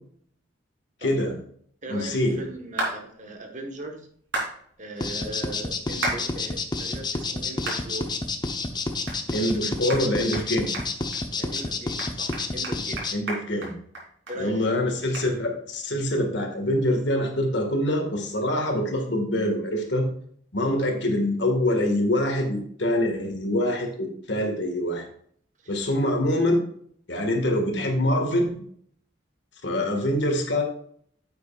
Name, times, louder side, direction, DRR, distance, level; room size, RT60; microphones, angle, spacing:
voice 1, 1.0-1.4 1.9-2.4 9.3-10.7 13.1-13.7 14.4-20.1 20.5-25.1 25.7-26.6 27.1-28.6 29.6-30.6, left 1 dB, 70° left, 3 dB, 1.9 m, -25 dB
voice 2, 1.8-4.1 4.8-8.1 11.4-13.1 14.3-14.8 20.9-21.1 25.6-25.7, right 2 dB, 45° right, 4 dB, 1.4 m, -39 dB
sound 1, 2.8-3.0 4.3-4.5 6.0-6.2 6.7-6.8 7.7-7.8 8.3-8.4 9.1-9.2 9.5-9.6 9.9-10.0 10.3-10.5 10.7-11.2 11.6-11.7 12.0-14.4 14.6-14.7 15.1-15.3, right 2 dB, 85° right, 3.6 m, -31 dB
sound 2, 5.0-13.1, left 3 dB, 25° left, 0.8 m, -29 dB
9.5 x 8.0 x 2.5 m, 0.62 s
head